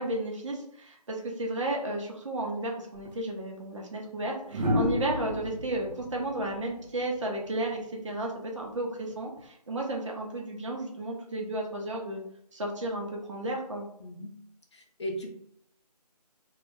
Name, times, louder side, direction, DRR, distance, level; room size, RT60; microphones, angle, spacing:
voice 1, 0.0-12.2 12.5-13.9, right 1 dB, 50° right, -1 dB, 0.7 m, -33 dB
sound 1, 2.9-3.1 4.5-7.5 9.1-9.4, left 1 dB, 90° right, 0.8 m, -32 dB
voice 2, 14.0-14.3 14.7-15.3, equal, 45° left, 1 dB, 0.6 m, -37 dB
2.3 x 2.0 x 3.5 m, 0.71 s
figure-of-eight pair, 165°, 21 cm